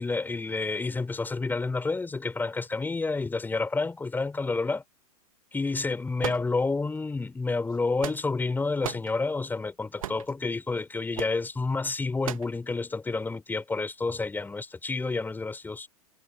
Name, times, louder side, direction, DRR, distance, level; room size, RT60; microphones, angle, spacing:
voice 1, 0.0-4.8 5.5-15.9, left 3 dB, 10° left, 5.2 m, -29 dB
sound 1, 6.2-7.0 7.7-8.5 8.8-9.1 10.0-10.3 11.1-11.4 12.2-12.6, right 11 dB, 65° right, 1.7 m, -36 dB
figure-of-eight pair, 100°, 19 cm